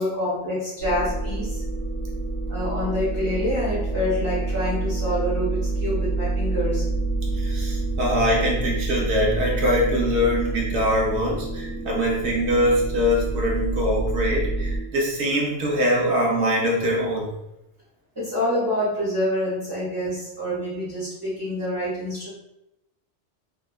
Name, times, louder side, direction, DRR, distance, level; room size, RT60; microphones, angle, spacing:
voice 1, 0.0-1.6 2.5-6.9 18.2-22.3, left 1 dB, 20° right, -10 dB, 0.6 m, -27 dB
sound 1, 0.8-14.8, right 2 dB, 55° left, 0.9 m, -27 dB
voice 2, 7.4-17.3, equal, 70° right, -3 dB, 1.0 m, -23 dB
2.8 x 2.3 x 2.2 m, 0.87 s
omnidirectional pair, 1.2 m